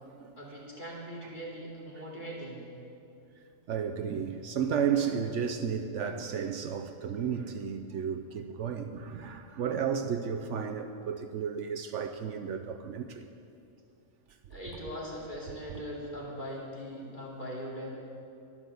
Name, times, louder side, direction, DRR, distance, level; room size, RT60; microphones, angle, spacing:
voice 1, 0.4-2.7 14.5-17.9, equal, 35° left, -5 dB, 2.9 m, -40 dB
voice 2, 3.7-13.3, right 7 dB, 70° right, 7 dB, 0.9 m, -33 dB
12.0 x 11.5 x 6.8 m, 2.6 s
omnidirectional pair, 1.4 m